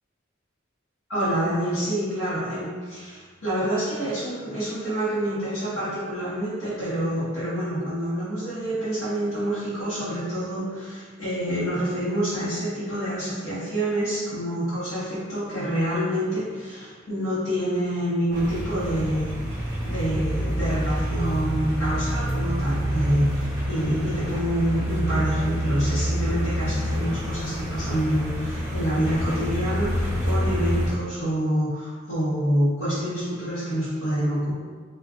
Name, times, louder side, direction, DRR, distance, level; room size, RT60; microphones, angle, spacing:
voice 1, 1.1-19.3 19.8-34.5, equal, 75° left, -12 dB, 0.9 m, -27 dB
sound 1, 18.3-30.9, equal, 15° right, 0.8 m, -27 dB
2.4 x 2.3 x 3.5 m, 1.5 s
head